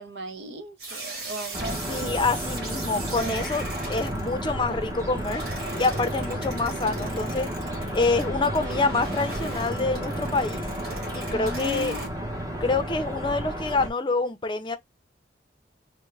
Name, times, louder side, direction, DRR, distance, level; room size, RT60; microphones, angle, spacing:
voice 1, 0.0-2.1 3.1-3.5 11.3-12.1, right 1 dB, 75° right, 0.8 m, -37 dB
sound 1, 0.8-12.1, right 2 dB, 60° right, 1.3 m, -38 dB
sound 2, 1.5-13.9, equal, 20° right, 0.8 m, -32 dB
voice 2, 1.9-3.6 3.9-5.4 5.8-7.5 7.9-10.7 11.1-11.9 12.6-14.8, left 3 dB, 25° left, 0.5 m, -26 dB
3.5 x 2.1 x 3.2 m
head